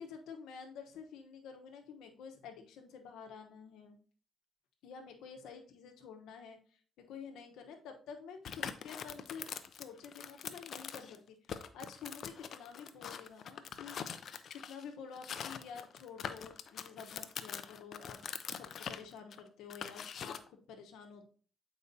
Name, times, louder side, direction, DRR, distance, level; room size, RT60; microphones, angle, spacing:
voice 1, 0.0-4.0 4.8-18.2 18.5-21.3, left 6 dB, 90° left, 4 dB, 1.0 m, -50 dB
sound 1, 8.4-11.2 11.5-14.8 15.1-20.5, left 7 dB, 60° left, 0.5 m, -43 dB
8.1 x 4.8 x 2.7 m, 0.42 s
cardioid pair, 90°, 0 cm